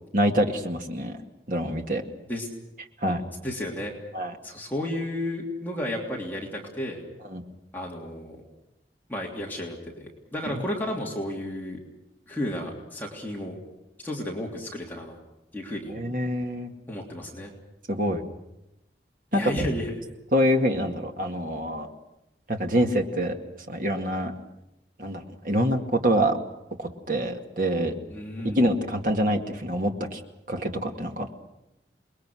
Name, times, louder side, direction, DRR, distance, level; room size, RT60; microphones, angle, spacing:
voice 1, 0.1-1.2 1.5-2.0 3.0-3.2 4.1-4.3 7.3-7.4 10.5-10.6 15.9-16.7 17.9-18.2 19.3-19.4 20.3-21.9 22.5-23.4 23.7-24.3 25.0-26.4 26.8-27.9 28.4-30.2 30.5-31.3, equal, 50° right, 4 dB, 2.2 m, -25 dB
voice 2, 3.4-3.9 4.4-7.0 7.7-8.4 9.1-11.8 12.3-13.6 14.0-15.2 15.5-16.0 16.9-17.5 19.3-20.0 28.1-28.7, left 1 dB, 10° left, -2 dB, 3.2 m, -32 dB
28.0 x 21.5 x 6.4 m, 0.91 s
head